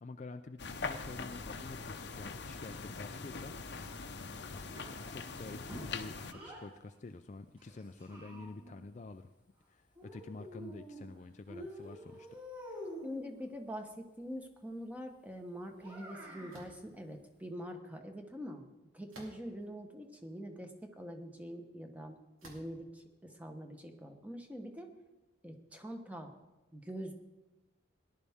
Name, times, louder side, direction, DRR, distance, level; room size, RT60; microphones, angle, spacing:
voice 1, 0.0-3.9 4.3-9.3 9.7-12.4, left 3 dB, 35° left, 8 dB, 0.4 m, -48 dB
sound 1, 0.6-6.3, left 4 dB, 55° left, 0.8 m, -42 dB
Child speech kid speaking, 4.7-6.7 7.6-8.8 10.0-11.1 11.5-13.2 15.8-16.6, equal, 25° right, 4.5 m, -48 dB
voice 2, 13.0-18.7 18.9-24.9 25.4-26.3 26.7-27.1, equal, 5° right, 4 dB, 1.1 m, -44 dB
sound 2, 16.5-16.8 19.1-19.7 20.4-20.5 22.4-22.8, right 1 dB, 90° right, 3.0 m, -53 dB
18.0 x 11.0 x 3.6 m, 1.1 s
head